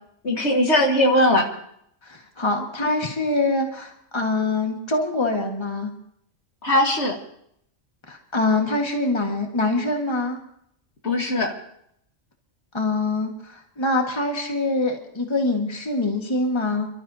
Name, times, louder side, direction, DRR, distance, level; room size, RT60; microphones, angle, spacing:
voice 1, 0.2-1.5 6.6-7.2 11.0-11.5, left 1 dB, 65° left, 1 dB, 2.3 m, -19 dB
voice 2, 2.0-5.9 8.1-10.4 12.7-16.9, left 2 dB, 20° left, 2 dB, 1.9 m, -24 dB
28.5 x 13.0 x 2.9 m, 0.70 s
omnidirectional pair, 1.3 m